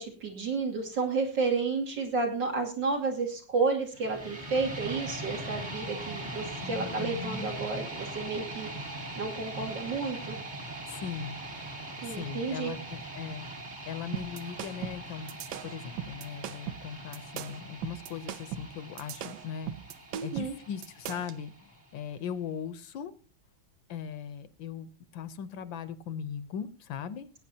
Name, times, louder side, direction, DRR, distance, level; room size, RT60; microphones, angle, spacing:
voice 1, 0.0-8.7 9.2-10.4 12.0-12.7 20.1-20.5, right 4 dB, 65° right, 1 dB, 3.1 m, -31 dB
sound 1, 3.9-21.9, right 1 dB, 25° right, 1.5 m, -41 dB
voice 2, 6.6-7.5 10.9-11.7 12.0-13.5 13.9-15.4 15.6-19.7 20.2-23.1 23.9-27.3, left 7 dB, 75° left, 13 dB, 1.5 m, -39 dB
sound 2, 14.1-21.4, right 10 dB, 80° right, 1.5 m, -39 dB
19.5 x 9.2 x 2.8 m, 0.37 s
omnidirectional pair, 2.2 m